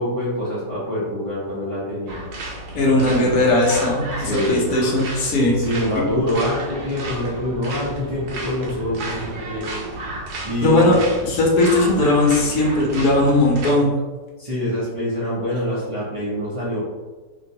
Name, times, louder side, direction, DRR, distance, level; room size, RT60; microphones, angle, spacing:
voice 1, 0.0-2.2 2.9-3.5 4.2-4.7 5.6-9.7 10.4-11.0 14.4-16.8, equal, 50° right, -10 dB, 0.4 m, -25 dB
sound 1, 2.1-13.7, right 2 dB, 70° right, 1.2 m, -33 dB
voice 2, 2.7-5.6 5.9-6.0 10.6-11.0 11.2-13.9, left 2 dB, 70° left, -2 dB, 1.1 m, -18 dB
3.0 x 2.5 x 2.7 m, 1.3 s
omnidirectional pair, 1.8 m